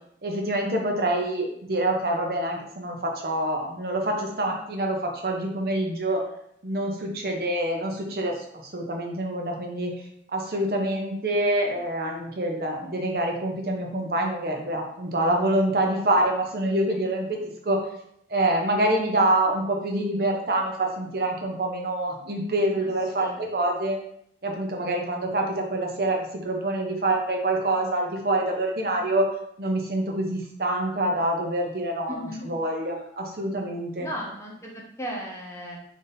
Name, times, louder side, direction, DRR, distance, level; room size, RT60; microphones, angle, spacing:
voice 1, 0.2-6.2 6.6-8.3 8.7-9.9 10.3-17.8 18.3-24.0 24.4-26.2 26.4-29.3 29.6-32.1 32.5-34.1, right 1 dB, 55° right, 1 dB, 0.6 m, -26 dB
voice 2, 23.2-23.5 32.1-32.5 34.0-35.8, equal, 15° left, -3 dB, 0.7 m, -36 dB
3.6 x 2.6 x 4.0 m, 0.72 s
head